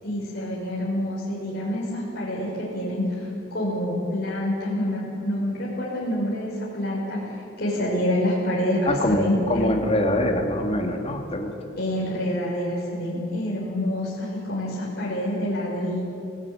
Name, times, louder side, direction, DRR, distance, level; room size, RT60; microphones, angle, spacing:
voice 1, 0.0-7.2 7.6-9.7 11.8-16.0, left 1 dB, 50° left, -6 dB, 5.9 m, -27 dB
voice 2, 8.9-11.5, left 1 dB, 30° left, 2 dB, 2.7 m, -24 dB
25.5 x 17.0 x 9.1 m, 2.7 s
head